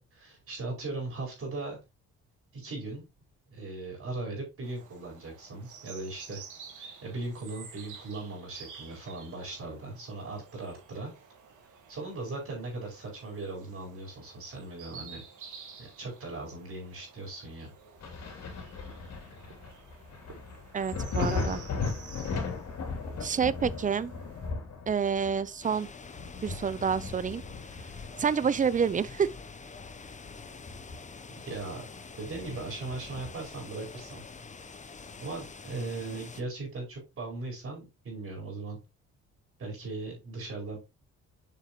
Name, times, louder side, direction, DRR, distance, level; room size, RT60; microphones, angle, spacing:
voice 1, 0.0-1.8 2.5-3.1 3.5-6.4 6.8-11.1 11.9-15.2 15.8-17.7 31.4-31.8 32.2-34.2 35.2-38.8 39.6-40.8, right 3 dB, 50° right, 4.6 m, -38 dB
sound 1, 4.6-24.5, right 6 dB, 80° right, 2.1 m, -51 dB
Thunder, 18.0-29.3 29.8-31.3 31.6-31.7 32.3-33.6 35.0-35.1, left 4 dB, 60° left, 3.0 m, -37 dB
voice 2, 20.7-21.6 23.2-24.1 24.9-25.9 26.4-27.4 28.2-29.3, right 6 dB, 25° right, 0.5 m, -28 dB
sound 2, 25.6-36.4, left 4 dB, 25° left, 0.8 m, -46 dB
7.4 x 5.3 x 3.1 m
cardioid pair, 90°, 30 cm